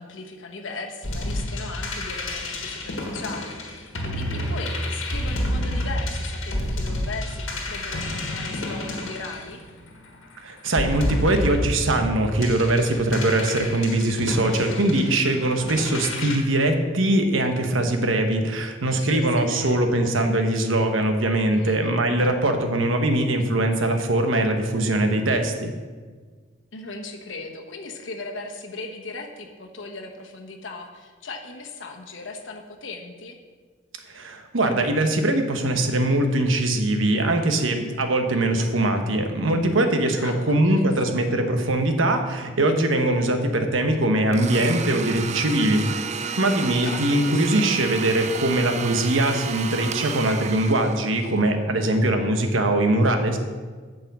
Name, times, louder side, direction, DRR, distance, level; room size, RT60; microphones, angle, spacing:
voice 1, 0.0-9.6 19.0-19.8 21.5-21.9 26.7-33.4 40.2-41.2 46.7-47.6, left 3 dB, 75° left, 2 dB, 1.2 m, -38 dB
sound 1, 1.0-10.1 10.7-16.4, left 1 dB, 90° left, 1.6 m, -29 dB
voice 2, 10.4-25.7 34.1-45.8 46.4-53.4, right 1 dB, 90° right, 6 dB, 1.1 m, -22 dB
Domestic sounds home sounds, 44.3-51.4, right 6 dB, 35° right, 0.4 m, -32 dB
8.9 x 5.4 x 7.4 m, 1.5 s
head